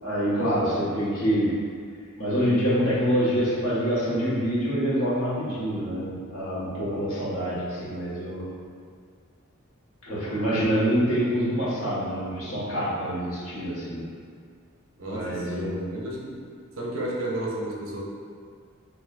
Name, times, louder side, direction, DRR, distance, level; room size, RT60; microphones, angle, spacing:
voice 1, 0.0-1.5 2.2-8.4 10.1-14.0 15.0-15.9, equal, 75° left, -9 dB, 1.5 m, -26 dB
voice 2, 15.0-16.4 16.8-18.0, right 1 dB, 70° right, -3 dB, 0.8 m, -33 dB
5.9 x 2.8 x 2.5 m, 2.1 s
head